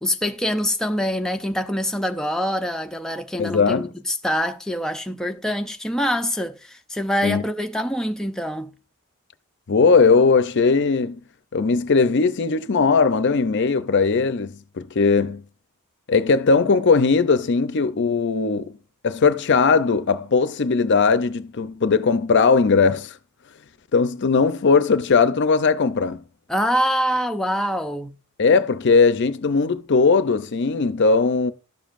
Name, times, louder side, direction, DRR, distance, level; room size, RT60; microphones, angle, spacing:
voice 1, 0.0-8.7 26.5-28.1, equal, 5° left, 0.5 m, -25 dB
voice 2, 3.4-3.9 7.2-7.4 9.7-11.2 11.5-15.4 16.1-18.7 19.0-23.2 23.9-26.2 28.4-31.5, left 4 dB, 55° left, 0.5 m, -19 dB
12.0 x 7.2 x 2.5 m
head